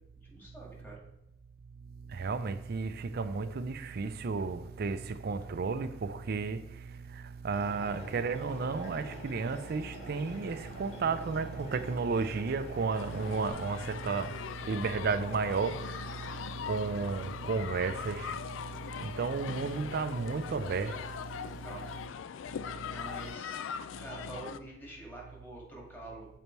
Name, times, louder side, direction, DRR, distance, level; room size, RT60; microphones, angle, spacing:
voice 1, 0.3-1.0 21.6-21.9 22.9-23.6 24.0-26.3, right 2 dB, 10° left, 2.0 m, -46 dB
voice 2, 2.1-21.7 22.6-23.0, right 4 dB, 55° right, 0.4 m, -33 dB
sound 1, 7.5-13.5, equal, 65° left, 2.4 m, -46 dB
sound 2, 12.9-24.6, left 7 dB, 90° left, 0.3 m, -41 dB
6.8 x 4.1 x 4.5 m
head